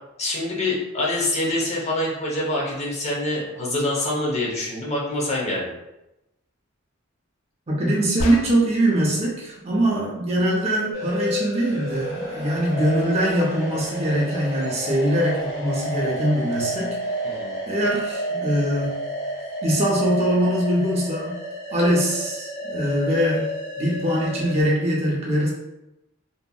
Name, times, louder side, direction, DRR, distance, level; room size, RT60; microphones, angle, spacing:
voice 1, 0.2-5.7 17.2-17.5, left 1 dB, 30° left, -4 dB, 0.7 m, -25 dB
voice 2, 7.7-17.0 17.7-19.0 19.6-21.4 21.7-23.5 23.8-25.5, right 1 dB, 30° right, -4 dB, 0.5 m, -22 dB
sound 1, 8.2-8.9, left 1 dB, 85° left, 0.3 m, -29 dB
sound 2, 10.9-24.6, equal, 60° left, 1.4 m, -30 dB
2.7 x 2.5 x 2.3 m, 0.92 s
head